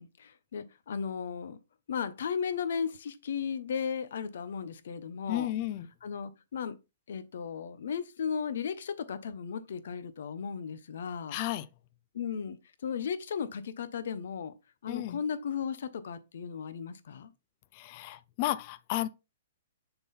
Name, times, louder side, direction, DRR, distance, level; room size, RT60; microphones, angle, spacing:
voice 1, 0.0-1.6 1.9-5.5 6.0-6.8 7.1-11.4 12.1-12.6 12.8-14.5 14.8-17.3, left 7 dB, 70° left, 0.8 m, -35 dB
voice 2, 5.3-5.9 11.3-11.7 14.9-15.2 17.7-19.1, left 14 dB, 40° left, 0.5 m, -33 dB
6.8 x 3.9 x 4.3 m
hypercardioid pair, 140°, 0 cm